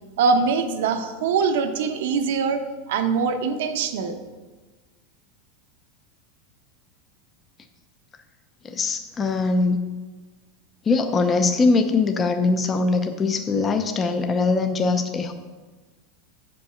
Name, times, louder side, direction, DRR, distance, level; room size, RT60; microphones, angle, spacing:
voice 1, 0.2-2.6 2.9-4.2, right 5 dB, 75° right, 7 dB, 0.9 m, -23 dB
voice 2, 8.6-9.8 10.9-15.3, left 3 dB, 20° left, 7 dB, 0.5 m, -22 dB
8.1 x 5.3 x 5.7 m, 1.3 s
supercardioid pair, 155°, 0 cm